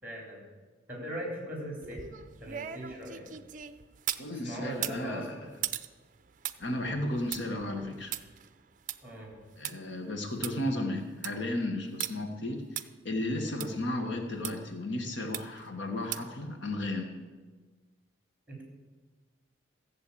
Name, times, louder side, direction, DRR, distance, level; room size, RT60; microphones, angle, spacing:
voice 1, 0.0-0.4 0.9-3.2 4.4-5.4 9.0-9.3 18.5-18.6, equal, 10° right, 0 dB, 3.9 m, -40 dB
sound 1, 1.8-4.3 4.7-9.7 10.1-10.2 10.4-10.5 11.0-11.4 12.0-12.1 12.8-12.9 13.6-13.7 14.4-14.5 15.3-15.7 16.1-16.4 16.8-16.9, right 11 dB, 40° right, 0.5 m, -38 dB
voice 2, 4.2-5.4 6.6-8.1 9.6-17.1, left 1 dB, 70° left, 5 dB, 1.5 m, -34 dB
14.5 x 7.8 x 8.5 m, 1.3 s
head